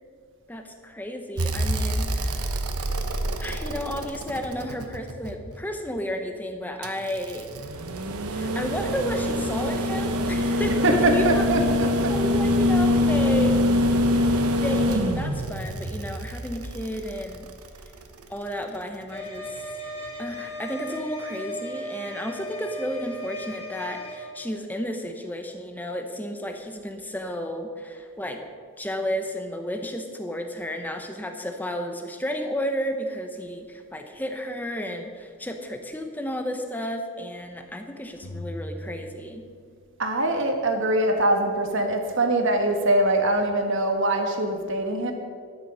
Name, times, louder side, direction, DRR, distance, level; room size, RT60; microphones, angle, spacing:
voice 1, 0.5-2.6 3.4-7.5 8.3-11.2 12.1-13.7 14.6-17.5 18.3-19.7 20.2-28.4 28.8-39.4, equal, 10° left, 5 dB, 0.9 m, -32 dB
sound 1, 1.4-5.6 6.8-18.0 19.6-19.7, left 1 dB, 85° right, 1.1 m, -25 dB
voice 2, 10.8-12.1 40.0-45.1, right 1 dB, 55° right, 4 dB, 1.5 m, -23 dB
sound 2, 19.1-24.2, equal, 25° left, 2.3 m, -36 dB
sound 3, 38.2-40.0, equal, 70° left, 1.7 m, -39 dB
12.5 x 9.4 x 5.6 m, 2.1 s
head